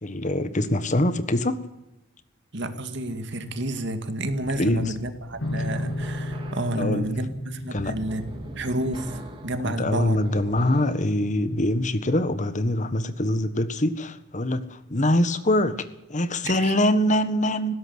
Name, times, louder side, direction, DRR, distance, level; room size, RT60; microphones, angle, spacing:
voice 1, 0.0-1.6 4.6-4.9 6.7-7.2 7.7-7.9 9.6-17.7, left 1 dB, 40° left, 1.5 m, -24 dB
voice 2, 2.5-8.2 8.6-10.2 16.5-16.7, right 1 dB, 65° right, 2.2 m, -30 dB
sound 1, 4.3-11.1, right 1 dB, 25° right, 3.5 m, -43 dB
sound 2, 5.4-12.6, left 1 dB, 70° left, 1.0 m, -36 dB
19.5 x 17.0 x 8.1 m
head